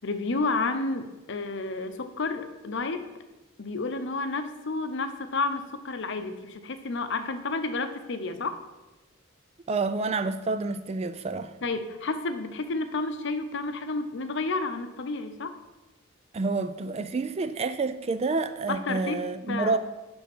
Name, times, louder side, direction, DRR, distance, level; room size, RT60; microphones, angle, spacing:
voice 1, 0.0-3.1 3.6-8.6 11.6-15.6 18.7-19.2 19.5-19.8, left 3 dB, 60° left, 9 dB, 0.7 m, -31 dB
voice 2, 9.7-11.5 16.3-19.8, right 3 dB, 30° right, 11 dB, 0.3 m, -28 dB
10.0 x 3.5 x 6.1 m, 1.1 s
head